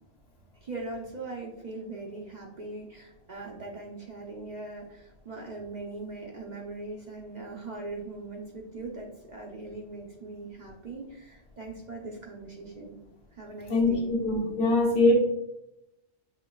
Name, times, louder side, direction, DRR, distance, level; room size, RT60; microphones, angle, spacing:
voice 1, 0.6-13.0 13.3-14.1, right 3 dB, 50° right, -1 dB, 0.6 m, -40 dB
voice 2, 13.7-15.1, left 2 dB, 65° left, -2 dB, 1.2 m, -23 dB
5.3 x 3.0 x 2.3 m, 0.87 s
omnidirectional pair, 1.2 m